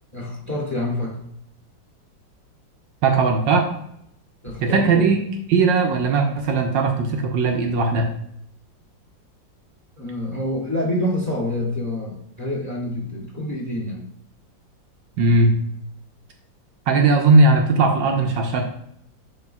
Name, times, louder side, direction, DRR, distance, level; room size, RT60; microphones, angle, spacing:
voice 1, 0.1-1.2 4.4-5.1 10.0-14.0, left 1 dB, 10° left, -6 dB, 2.1 m, -27 dB
voice 2, 3.0-3.7 4.6-5.2 5.5-8.1 15.2-15.5 16.9-18.6, right 3 dB, 75° right, 2 dB, 1.5 m, -18 dB
11.0 x 3.9 x 2.3 m, 0.74 s
omnidirectional pair, 2.0 m